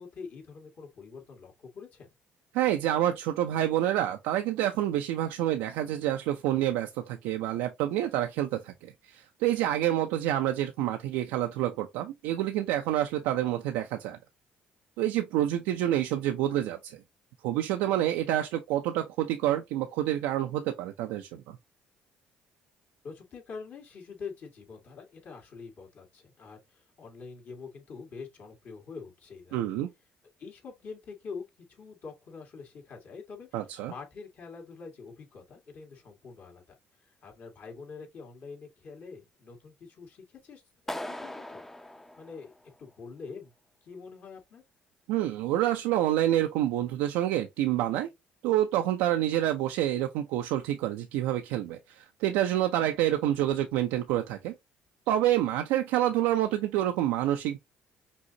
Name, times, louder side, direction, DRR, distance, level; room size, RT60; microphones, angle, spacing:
voice 1, 0.0-2.1 23.0-29.7 30.4-31.4 31.7-36.6 37.0-41.6 42.2-42.5 42.8-43.5 43.8-44.6, left 5 dB, 55° left, 2.0 m, -45 dB
voice 2, 2.5-14.2 15.0-17.0 17.4-21.6 29.5-29.9 33.5-33.9 45.1-48.1 48.4-54.5 55.1-57.6, right 12 dB, 90° right, 0.5 m, -28 dB
Clapping, 40.9-42.9, left 1 dB, 10° left, 0.6 m, -40 dB
5.3 x 2.9 x 2.7 m
supercardioid pair, 75°, 4 cm